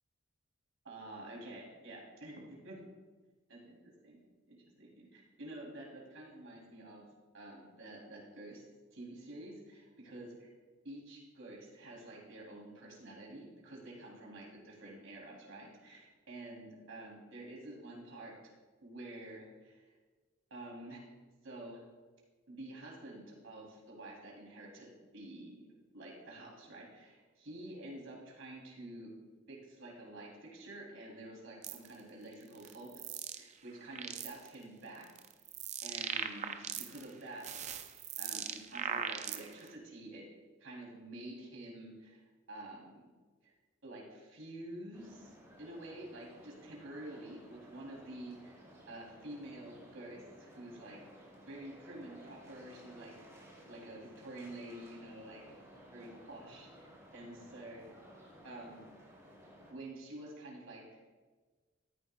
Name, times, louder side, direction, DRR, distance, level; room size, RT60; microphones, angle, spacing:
voice 1, 0.8-2.8 3.5-7.0 7.3-8.6 8.9-10.5 10.8-18.5 18.8-20.0 20.5-21.0 21.4-21.8 22.5-25.7 25.9-29.1 29.5-35.1 35.8-37.7 38.2-40.3 40.6-43.1 43.4-43.5 43.8-48.6 48.9-55.6 55.9-58.0 58.4-58.8 59.7-60.8, right 1 dB, 85° right, -3 dB, 3.0 m, -49 dB
sound 1, 31.6-31.9 32.5-33.4 33.8-34.5 35.0-37.1 37.4-39.7, right 8 dB, 35° right, 0.5 m, -39 dB
sound 2, 44.9-59.7, equal, 15° right, 2.5 m, -57 dB
13.5 x 10.0 x 2.3 m, 1.4 s
head